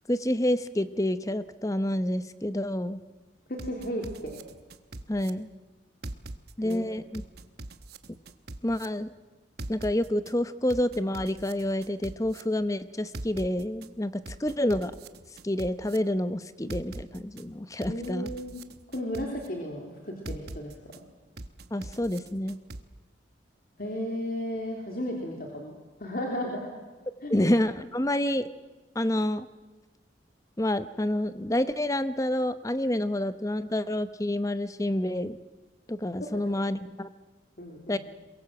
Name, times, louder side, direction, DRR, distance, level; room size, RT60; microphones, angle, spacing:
voice 1, 0.1-3.0 5.1-5.5 6.6-7.2 8.6-9.1 9.7-14.9 15.4-18.3 21.7-22.6 27.3-28.5 28.9-29.5 30.6-35.4 35.9-37.1 37.9-38.0, left 1 dB, 15° left, 13 dB, 0.8 m, -28 dB
voice 2, 3.5-4.4 6.6-6.9 17.9-18.6 18.9-20.7 23.8-26.7 27.2-27.4 37.6-38.0, equal, 50° left, 0 dB, 3.2 m, -34 dB
sound 1, 3.6-5.3 6.0-6.8 7.1-8.9 9.6-10.3 10.7-12.4 13.1-13.9 14.3-16.0 16.7-17.4 17.8-19.5 20.3-21.0 21.4-22.8, right 2 dB, 55° right, 1.1 m, -41 dB
22.5 x 22.5 x 7.8 m, 1.2 s
head